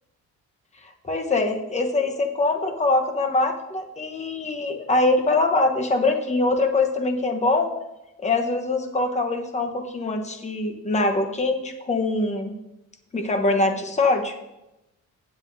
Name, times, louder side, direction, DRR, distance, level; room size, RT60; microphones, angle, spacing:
voice 1, 0.8-7.7 8.2-12.5 13.1-14.3, left 2 dB, 20° left, 4 dB, 1.0 m, -23 dB
15.5 x 8.1 x 2.7 m, 0.93 s
cardioid pair, 150°, 32 cm